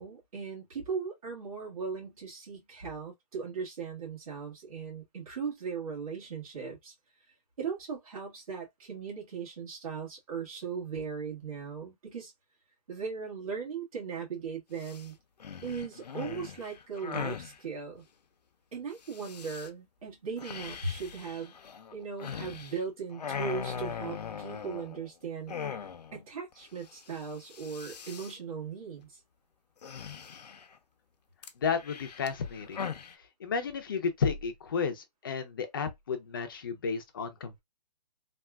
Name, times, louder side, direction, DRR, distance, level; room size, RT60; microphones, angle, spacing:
voice 1, 0.0-6.9 7.6-12.3 12.9-15.2 15.6-18.0 18.7-21.6 21.9-29.2, right 5 dB, 55° right, 1.7 m, -38 dB
sound 1, 14.8-15.1 15.4-17.6 19.1-19.7 20.4-22.8 23.1-25.1 25.5-26.2 26.5-26.6 26.9-27.2 27.4-28.4 29.8-30.7 31.4-33.1, left 7 dB, 75° left, 0.6 m, -40 dB
voice 2, 31.6-32.9 33.4-37.6, left 5 dB, 30° left, 0.5 m, -32 dB
3.4 x 2.4 x 2.3 m
hypercardioid pair, 170°, 21 cm